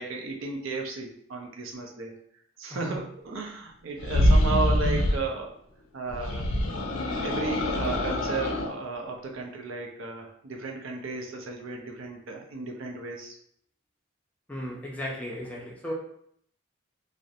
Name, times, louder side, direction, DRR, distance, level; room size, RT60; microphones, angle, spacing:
voice 1, 0.0-2.1 2.6-5.6 5.9-6.5 7.2-13.3, right 3 dB, 75° right, 1 dB, 0.5 m, -34 dB
sound 1, 4.0-5.2 6.1-8.7, left 1 dB, 80° left, 0.4 m, -24 dB
voice 2, 14.5-15.9, equal, 5° left, -3 dB, 0.4 m, -35 dB
2.4 x 2.0 x 2.7 m, 0.67 s
head